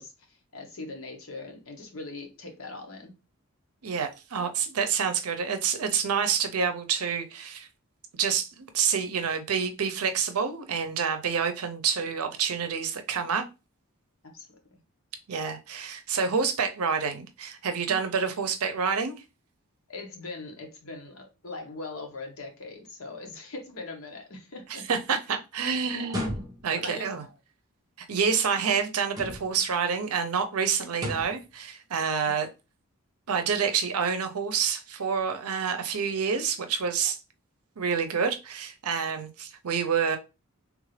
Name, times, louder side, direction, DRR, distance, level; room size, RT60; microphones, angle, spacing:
voice 1, 0.0-3.1 14.2-14.8 17.9-18.1 19.9-24.8 25.9-26.3 26.7-27.3, left 3 dB, 70° left, 1.0 m, -41 dB
voice 2, 3.8-7.7 8.2-13.4 15.3-19.2 24.7-27.2 28.0-32.5 33.3-37.2 37.8-40.2, right 6 dB, 80° right, 0.6 m, -28 dB
sound 1, 26.0-26.9 29.1-29.7 30.9-31.5, equal, 15° right, 0.8 m, -35 dB
3.5 x 2.4 x 3.2 m
head